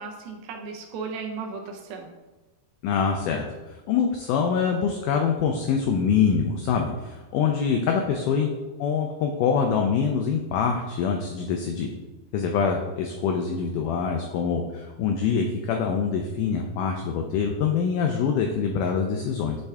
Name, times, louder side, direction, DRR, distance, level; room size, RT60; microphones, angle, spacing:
voice 1, 0.0-2.1 8.0-8.3, right 5 dB, 85° right, 2 dB, 2.6 m, -36 dB
voice 2, 2.8-8.5 8.8-11.9 12.3-19.6, left 6 dB, 90° left, 3 dB, 1.8 m, -25 dB
8.0 x 3.5 x 3.3 m, 1.2 s
omnidirectional pair, 4.2 m